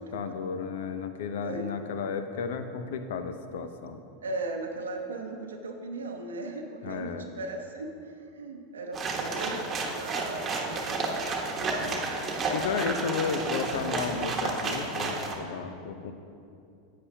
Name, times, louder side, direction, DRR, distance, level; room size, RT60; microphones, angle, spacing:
voice 1, 0.0-4.0 6.8-7.3 11.8-12.1 12.5-16.1, left 5 dB, 70° left, 9 dB, 0.6 m, -33 dB
voice 2, 1.4-1.7 4.2-11.1, right 2 dB, 85° right, 3 dB, 0.7 m, -37 dB
sound 1, 8.9-15.3, right 3 dB, 30° right, 1.2 m, -31 dB
9.6 x 8.5 x 2.8 m, 2.6 s
hypercardioid pair, 95°, 0 cm